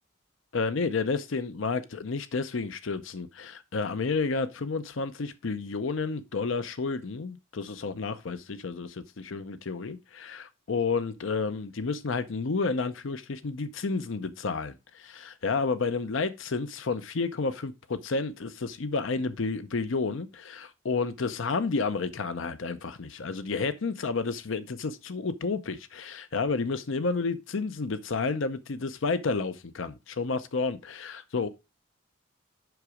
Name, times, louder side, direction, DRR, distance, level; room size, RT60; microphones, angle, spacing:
voice 1, 0.5-31.5, left 4 dB, 70° left, 0.6 m, -31 dB
7.9 x 5.9 x 4.8 m
head